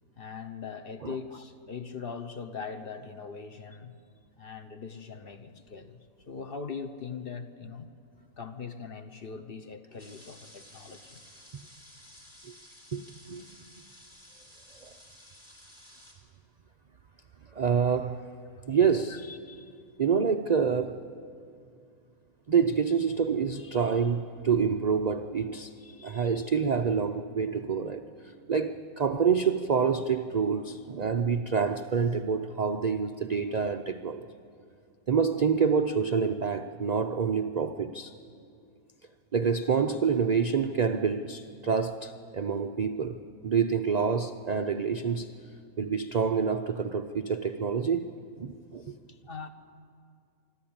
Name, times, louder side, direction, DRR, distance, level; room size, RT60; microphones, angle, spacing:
voice 1, 0.2-3.9 4.4-7.9 8.4-11.2 19.1-19.2 49.1-49.5, left 5 dB, 45° left, 1.0 m, -41 dB
sound 1, 10.0-16.1, left 1 dB, 30° left, 3.6 m, -53 dB
voice 2, 17.5-18.2 18.7-19.6 20.0-21.1 22.5-28.0 28.5-34.2 35.1-38.1 39.3-43.2 43.4-45.3 45.8-48.1 48.4-49.0, right 6 dB, 75° right, 0.3 m, -27 dB
24.0 x 13.0 x 8.7 m
omnidirectional pair, 1.5 m